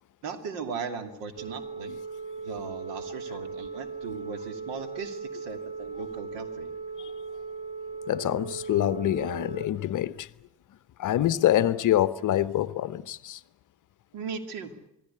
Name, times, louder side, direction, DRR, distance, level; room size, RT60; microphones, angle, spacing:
voice 1, 0.2-1.9 2.4-6.8 14.1-14.7, right 5 dB, 60° right, 2.8 m, -38 dB
Telephone, 1.4-9.7, right 4 dB, 15° right, 1.6 m, -38 dB
voice 2, 8.1-10.3 11.0-13.4, left 12 dB, 40° left, 0.8 m, -25 dB
27.5 x 17.5 x 8.4 m
figure-of-eight pair, 55°, 49 cm